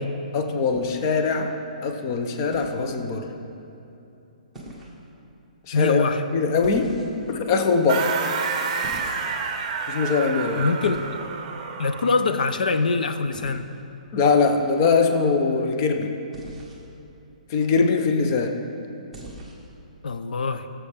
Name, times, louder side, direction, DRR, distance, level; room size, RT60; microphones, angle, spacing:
voice 1, 0.3-3.4 5.7-6.0 6.3-7.0 7.3-8.1 9.9-10.7 14.1-16.1 17.5-18.6, left 4 dB, 25° left, 5 dB, 0.6 m, -22 dB
sound 1, 0.6-1.3 2.5-2.9 4.5-5.0 6.6-7.3 8.8-9.5 10.8-11.2 13.3-13.6 16.3-16.8 19.1-19.7, right 1 dB, ahead, 1.2 m, -41 dB
voice 2, 5.7-6.2 10.6-11.0 11.8-13.7 20.0-20.7, left 4 dB, 75° left, 9 dB, 0.6 m, -23 dB
sound 2, 7.9-12.3, right 5 dB, 30° right, 0.8 m, -29 dB
18.5 x 7.2 x 3.5 m, 2.7 s
hypercardioid pair, 170°, 4 cm